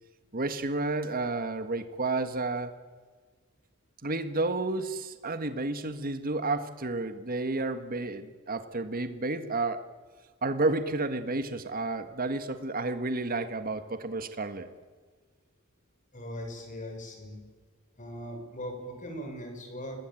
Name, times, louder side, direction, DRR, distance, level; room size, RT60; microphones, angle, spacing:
voice 1, 0.3-2.7 4.0-9.8 10.4-14.7, right 2 dB, 40° right, 9 dB, 1.6 m, -31 dB
voice 2, 16.1-17.4 18.0-20.0, equal, 35° left, 4 dB, 6.1 m, -39 dB
27.5 x 19.5 x 9.1 m, 1.4 s
head